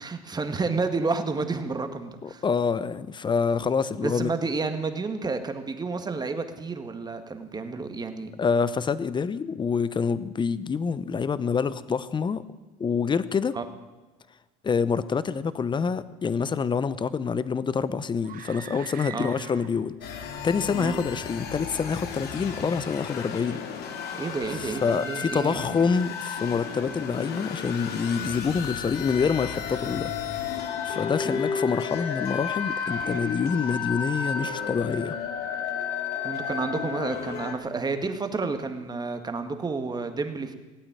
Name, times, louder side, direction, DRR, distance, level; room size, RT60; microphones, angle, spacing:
voice 1, 0.0-2.4 4.0-8.3 13.5-13.6 19.1-19.3 20.7-20.9 24.2-25.8 31.2-31.4 36.2-40.5, right 4 dB, 20° right, 7 dB, 1.8 m, -30 dB
voice 2, 2.2-4.3 8.4-12.4 12.8-13.5 14.6-19.9 20.4-23.6 24.6-35.2, left 5 dB, 25° left, 16 dB, 0.8 m, -27 dB
sound 1, 18.2-20.0, right 10 dB, 45° right, 1.3 m, -43 dB
sound 2, 20.0-37.5, left 6 dB, 55° left, 2.4 m, -33 dB
18.0 x 8.8 x 8.9 m, 1.2 s
supercardioid pair, 90°, 19 cm